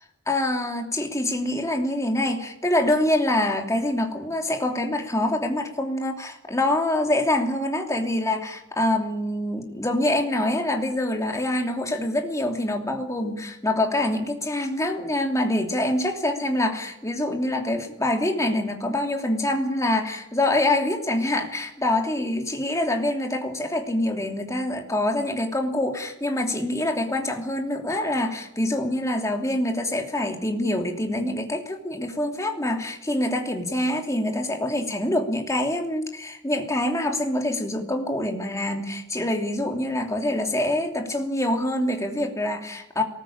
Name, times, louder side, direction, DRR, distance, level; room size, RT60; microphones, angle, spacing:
voice 1, 0.3-43.0, left 1 dB, 15° left, 3 dB, 2.9 m, -25 dB
22.5 x 19.5 x 8.7 m, 0.80 s
head